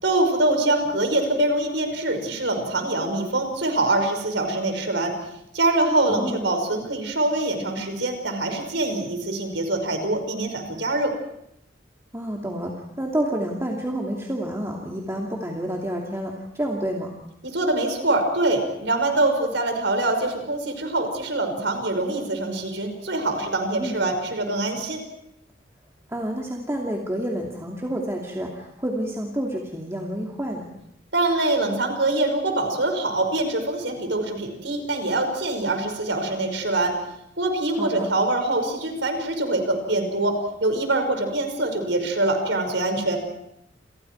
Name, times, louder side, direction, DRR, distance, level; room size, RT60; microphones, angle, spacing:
voice 1, 0.0-5.1 5.5-11.1 17.4-25.0 31.1-37.0 37.4-43.2, right 2 dB, 70° right, 5 dB, 5.5 m, -24 dB
voice 2, 6.1-6.4 12.1-17.1 23.8-24.0 26.1-30.7 37.8-38.1, right 1 dB, 15° right, -1 dB, 2.6 m, -29 dB
29.0 x 28.5 x 4.7 m, 0.76 s
head